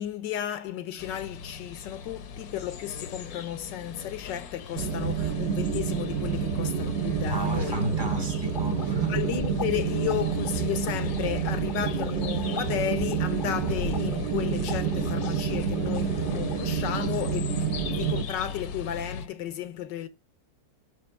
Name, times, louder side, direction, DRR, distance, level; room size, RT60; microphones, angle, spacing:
voice 1, 0.0-7.8 8.4-8.5 9.1-20.1, left 11 dB, 80° left, 1.5 m, -33 dB
sound 1, 1.0-19.3, left 5 dB, 65° left, 1.2 m, -39 dB
sound 2, 4.8-18.2, right 7 dB, 55° right, 0.8 m, -29 dB
sound 3, 7.3-16.8, left 5 dB, 45° left, 0.6 m, -41 dB
voice 2, 7.3-9.5, right 2 dB, 30° right, 0.5 m, -32 dB
7.8 x 3.7 x 4.5 m
omnidirectional pair, 1.9 m